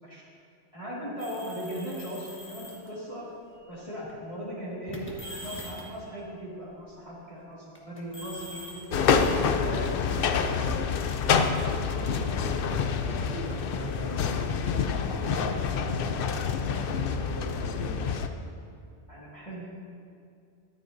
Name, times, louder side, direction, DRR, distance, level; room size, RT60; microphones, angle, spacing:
voice 1, 0.7-3.2 3.7-5.1 5.4-8.8 9.4-10.7 19.1-19.6, equal, 30° left, -9 dB, 1.9 m, -38 dB
sound 1, 1.2-2.9 3.8-4.1 4.9-6.0 7.7-9.8, equal, 10° left, 1.2 m, -43 dB
sound 2, 8.9-18.3, left 6 dB, 60° left, 0.6 m, -27 dB
voice 2, 11.6-18.2, right 1 dB, 15° right, -8 dB, 2.4 m, -40 dB
13.5 x 10.5 x 2.6 m, 2.4 s
omnidirectional pair, 1.2 m